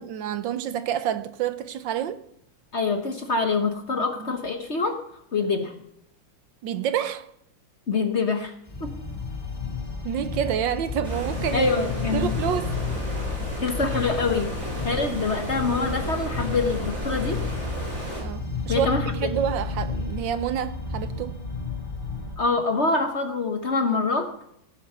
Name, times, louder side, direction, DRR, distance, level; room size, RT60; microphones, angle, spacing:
voice 1, 0.0-2.2 4.2-4.3 6.6-7.3 10.0-11.7 12.1-12.7 18.1-21.4, right 9 dB, 75° right, 1.4 m, -28 dB
voice 2, 2.7-5.0 5.3-5.7 7.9-8.5 8.8-8.9 11.5-12.3 13.6-14.5 14.8-17.4 18.7-19.1 22.4-24.3, left 4 dB, 40° left, 1.1 m, -25 dB
sound 1, 8.7-22.3, left 4 dB, 10° left, 1.9 m, -32 dB
Stream, 11.0-18.2, equal, 40° right, 4.1 m, -34 dB
18.0 x 7.3 x 5.6 m
omnidirectional pair, 2.2 m